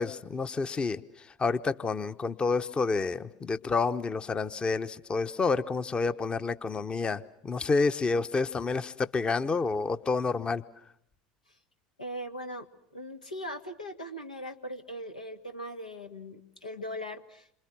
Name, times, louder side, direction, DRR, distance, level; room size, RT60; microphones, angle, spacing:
voice 1, 0.0-10.6, left 4 dB, 25° left, 11 dB, 1.0 m, -29 dB
voice 2, 12.0-12.7 12.9-17.6, equal, 85° left, 5 dB, 1.9 m, -40 dB
28.0 x 26.5 x 6.1 m, 0.73 s
figure-of-eight pair, 75°, 4 cm